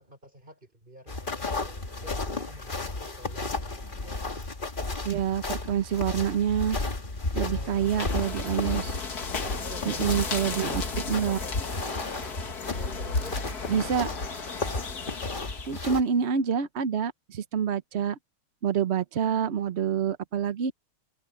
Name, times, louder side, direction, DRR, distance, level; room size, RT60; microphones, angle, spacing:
voice 1, 0.0-2.2 2.4-4.2 7.4-8.7 9.3-10.8 11.1-12.3 12.7-14.1, right 1 dB, 20° right, 5.7 m, -48 dB
sound 1, 1.1-16.0, left 3 dB, 25° left, 1.6 m, -34 dB
sound 2, 1.4-5.5 6.2-10.2, right 1 dB, 5° right, 5.6 m, -60 dB
voice 2, 5.0-6.8 7.3-9.0 9.9-10.8 11.1-11.4 13.7-14.1 15.7-18.2 18.6-20.7, right 8 dB, 75° right, 0.6 m, -27 dB
sound 3, 7.6-16.0, left 4 dB, 45° left, 2.3 m, -35 dB
omnidirectional pair, 2.4 m